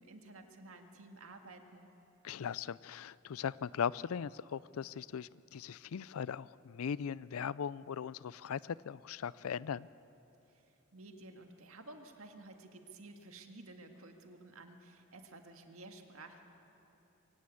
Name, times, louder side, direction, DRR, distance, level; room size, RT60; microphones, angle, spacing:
voice 1, 0.0-1.9 10.5-16.4, right 2 dB, 85° right, 4 dB, 1.9 m, -53 dB
voice 2, 2.2-9.9, left 7 dB, 85° left, 20 dB, 0.4 m, -39 dB
23.0 x 17.5 x 8.5 m, 2.9 s
head